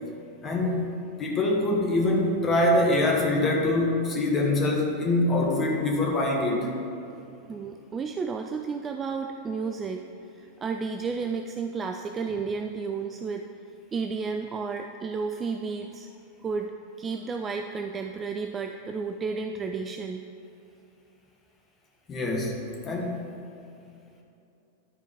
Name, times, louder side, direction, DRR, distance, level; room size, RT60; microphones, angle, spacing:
voice 1, 0.4-6.7 22.1-23.3, left 2 dB, 25° left, -1 dB, 1.4 m, -24 dB
voice 2, 7.5-10.0 10.4-13.5 13.9-16.1 16.4-20.2, right 5 dB, 20° right, 5 dB, 0.4 m, -32 dB
11.5 x 4.5 x 4.9 m, 2.7 s
figure-of-eight pair, 90°, 0 cm